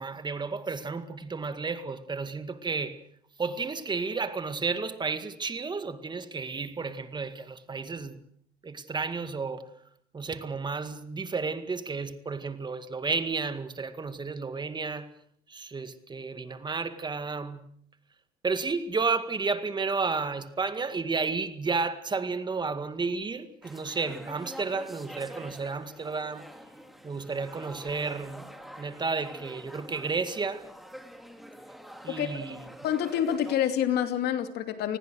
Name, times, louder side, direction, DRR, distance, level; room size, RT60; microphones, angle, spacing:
voice 1, 0.0-3.0 3.4-8.2 8.6-9.7 10.1-15.1 15.5-17.7 18.4-26.5 27.0-28.5 28.8-30.6 32.0-32.6, right 4 dB, 25° right, 2.0 m, -32 dB
sound 1, 23.6-33.6, equal, ahead, 3.0 m, -46 dB
voice 2, 32.8-35.0, left 10 dB, 75° left, 2.7 m, -27 dB
29.0 x 20.5 x 6.5 m
cardioid pair, 110°, 17 cm